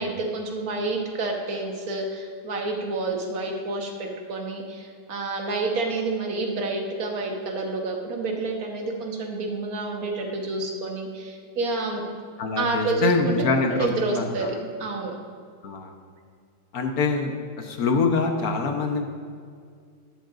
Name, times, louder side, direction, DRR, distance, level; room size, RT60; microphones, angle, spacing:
voice 1, 0.0-12.1 12.6-13.4 13.7-15.2, right 3 dB, 55° right, 1 dB, 1.6 m, -29 dB
voice 2, 12.4-14.5 15.6-15.9 16.7-17.3 17.6-19.0, left 4 dB, 60° left, 4 dB, 1.3 m, -24 dB
12.5 x 10.5 x 2.5 m, 2.1 s
omnidirectional pair, 2.0 m